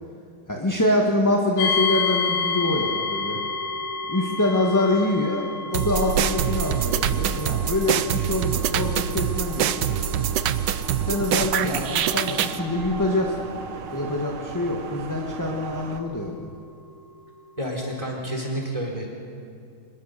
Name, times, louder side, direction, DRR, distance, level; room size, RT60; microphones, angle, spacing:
voice 1, 0.5-3.4 4.1-10.3 11.0-16.5, left 2 dB, 10° left, -1 dB, 1.5 m, -25 dB
sound 1, 1.6-16.4, left 4 dB, 75° left, 3.0 m, -32 dB
sound 2, 5.7-12.6, right 10 dB, 65° right, 1.2 m, -25 dB
sound 3, 5.9-16.0, right 6 dB, 80° right, 2.0 m, -35 dB
voice 2, 17.6-19.1, equal, 15° right, -1 dB, 4.2 m, -29 dB
25.5 x 20.5 x 6.8 m, 2.3 s
omnidirectional pair, 2.3 m